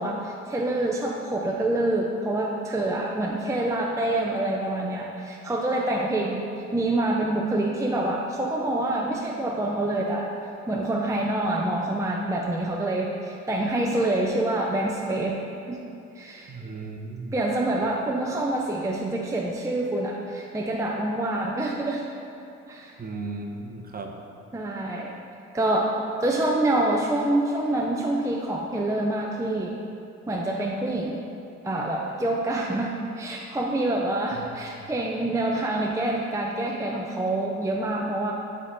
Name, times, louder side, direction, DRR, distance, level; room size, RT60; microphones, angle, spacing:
voice 1, 0.0-6.4 6.7-10.4 10.7-15.4 15.7-15.8 16.1-16.6 17.3-22.0 22.7-22.9 24.5-25.1 25.5-25.9 26.2-29.8 30.3-31.2 31.6-38.3, right 1 dB, 10° right, -1 dB, 0.6 m, -26 dB
voice 2, 16.5-17.3 23.0-24.2 34.3-34.5, right 3 dB, 30° right, 2 dB, 0.8 m, -36 dB
11.0 x 3.7 x 4.0 m, 2.8 s
cardioid pair, 90°, 30 cm